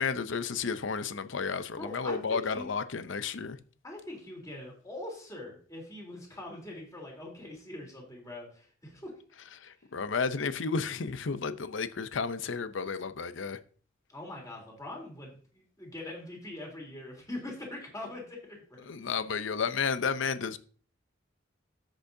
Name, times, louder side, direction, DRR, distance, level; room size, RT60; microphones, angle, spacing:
voice 1, 0.0-3.6 9.6-13.6 18.8-20.6, left 5 dB, 70° left, 0.6 m, -32 dB
voice 2, 1.8-2.7 3.8-9.1 14.1-19.1, left 1 dB, 15° left, 3.2 m, -42 dB
10.0 x 8.0 x 2.7 m
head